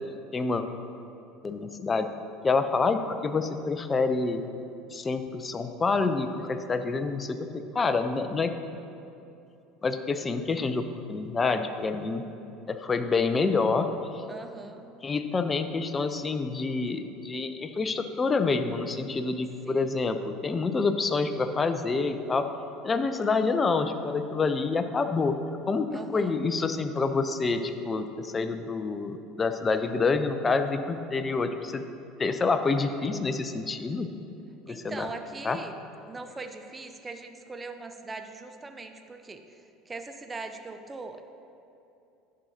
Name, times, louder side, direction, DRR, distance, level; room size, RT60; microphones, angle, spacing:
voice 1, 0.3-0.6 1.4-2.1 2.4-4.4 4.9-8.5 9.8-12.2 12.7-13.9 14.1-14.2 15.0-22.4 22.8-25.3 25.7-31.8 32.2-34.1 34.7-35.1 35.4-35.6, left 4 dB, 25° left, 9 dB, 0.5 m, -27 dB
voice 2, 14.3-14.8 19.6-19.9 25.9-26.3 34.7-35.8 36.1-41.2, right 3 dB, 20° right, 6 dB, 0.6 m, -41 dB
11.0 x 6.2 x 2.8 m, 2.7 s
hypercardioid pair, 75°, 0 cm